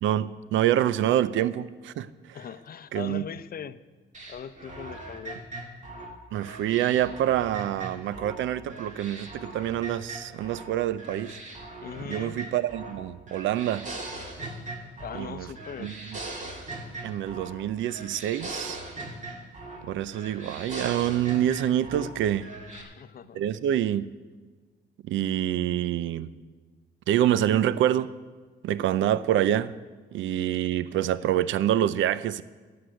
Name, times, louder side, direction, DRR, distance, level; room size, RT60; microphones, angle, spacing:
voice 1, 0.0-2.4 2.9-3.2 6.3-11.4 12.1-13.9 15.1-15.5 15.8-16.2 17.0-18.8 19.8-22.5 23.3-24.1 25.0-26.3 27.1-28.1 28.6-29.7 30.1-32.4, right 11 dB, 75° right, 0.5 m, -26 dB
voice 2, 2.3-3.8 4.3-5.4 11.8-12.4 15.0-16.0 22.7-23.4, left 8 dB, 50° left, 0.6 m, -40 dB
sound 1, 4.1-8.4 8.7-10.7 11.0-13.0 13.3-15.3 15.6-17.6 17.8-19.9 20.1-22.1 22.4-22.8, right 2 dB, 40° right, 2.3 m, -40 dB
11.5 x 8.0 x 9.1 m
cardioid pair, 90°, 20 cm